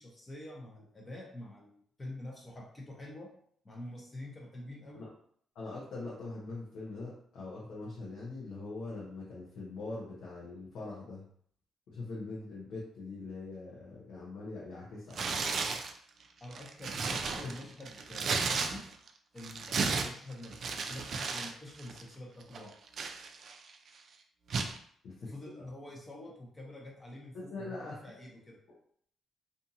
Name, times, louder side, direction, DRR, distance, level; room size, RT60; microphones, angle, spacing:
voice 1, 0.0-3.3 3.6-5.0 16.4-18.8 19.3-22.7 25.2-28.6, left 1 dB, 25° left, -2 dB, 0.9 m, -47 dB
voice 2, 5.5-11.2 11.9-15.8 17.3-17.5 25.0-25.3 25.6-25.7 27.3-28.0, left 3 dB, 75° left, -6 dB, 0.8 m, -42 dB
Tearing, 15.1-15.9 16.4-19.1 19.4-21.5 21.8-22.0 22.5-23.7 24.5-24.8, right 4 dB, 55° right, 0.3 m, -34 dB
2.6 x 2.5 x 2.7 m, 0.62 s
cardioid pair, 90°, 0 cm